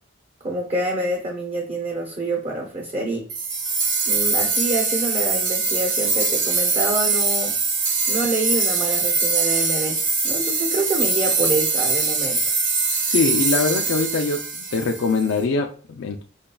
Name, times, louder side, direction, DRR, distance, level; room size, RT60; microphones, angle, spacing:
voice 1, 0.4-3.3 4.1-7.6 8.1-12.5, right 2 dB, 30° right, 0.6 m, -27 dB
sound 1, 3.3-15.3, right 4 dB, 70° right, 1.1 m, -22 dB
voice 2, 13.0-14.4 14.7-16.2, left 4 dB, 75° left, 0.4 m, -22 dB
5.1 x 2.2 x 2.2 m
head